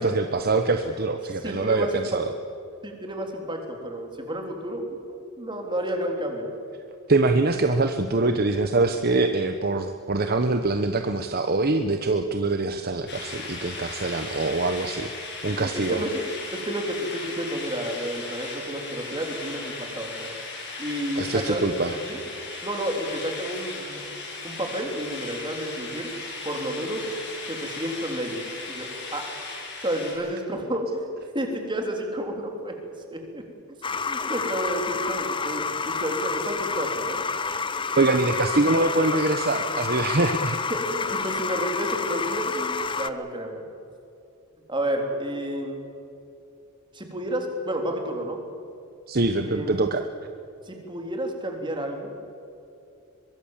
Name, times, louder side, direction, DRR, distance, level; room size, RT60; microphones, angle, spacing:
voice 1, 0.0-2.3 7.1-15.1 15.4-16.0 21.2-22.0 38.0-40.6 49.1-50.0, right 3 dB, 45° right, 7 dB, 1.0 m, -24 dB
voice 2, 1.4-2.0 2.8-6.6 15.5-16.2 16.5-20.3 20.8-22.2 22.6-24.0 24.4-26.1 26.4-27.1 27.4-29.2 29.8-31.1 31.3-32.7 33.1-33.4 34.1-37.2 40.7-43.6 44.7-45.8 46.9-48.4 49.4-49.7 50.7-52.1, right 1 dB, 20° right, 3 dB, 3.5 m, -31 dB
sound 1, 13.1-30.1, left 3 dB, 50° left, 6.7 m, -37 dB
sound 2, 33.8-43.1, left 5 dB, 20° left, 0.7 m, -29 dB
24.0 x 22.0 x 7.4 m, 2.6 s
head